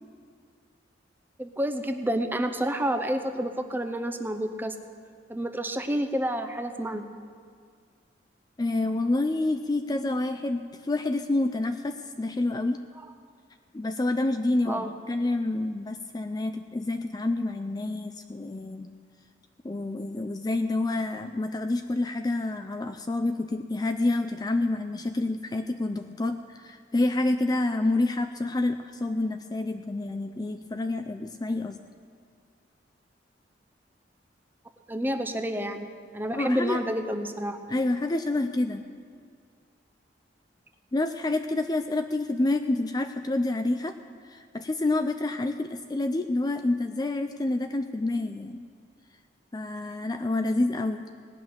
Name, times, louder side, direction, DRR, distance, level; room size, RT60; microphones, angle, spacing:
voice 1, 1.4-4.7 5.3-7.0 14.7-14.9 34.9-35.9 36.1-37.6, equal, 10° right, 7 dB, 0.7 m, -29 dB
voice 2, 8.6-12.8 13.7-18.9 19.6-31.8 36.3-36.8 37.7-38.9 40.9-44.0 44.3-48.7 49.5-51.1, left 2 dB, 20° left, 7 dB, 0.4 m, -28 dB
18.0 x 6.1 x 9.4 m, 2.1 s
head